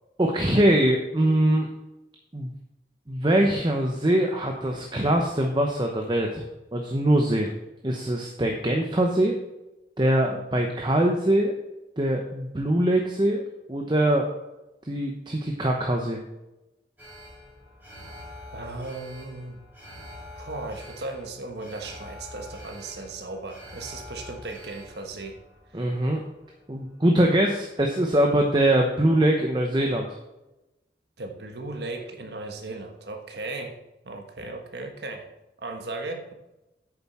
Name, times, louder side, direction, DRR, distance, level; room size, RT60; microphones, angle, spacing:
voice 1, 0.2-1.7 2.3-2.5 3.1-6.4 6.7-7.5 7.8-9.4 10.0-11.5 12.0-13.4 13.7-14.2 14.8-16.2 25.7-26.2 26.7-30.1, right 1 dB, 25° right, 2 dB, 0.8 m, -22 dB
Alarm, 17.0-27.2 27.6-27.7, left 1 dB, 10° right, 3.5 m, -45 dB
voice 2, 18.5-19.6 20.4-25.4 25.7-25.9 31.2-33.8 34.0-35.3 35.6-36.3, right 2 dB, 70° right, 3 dB, 1.3 m, -36 dB
8.8 x 7.1 x 4.4 m, 0.97 s
head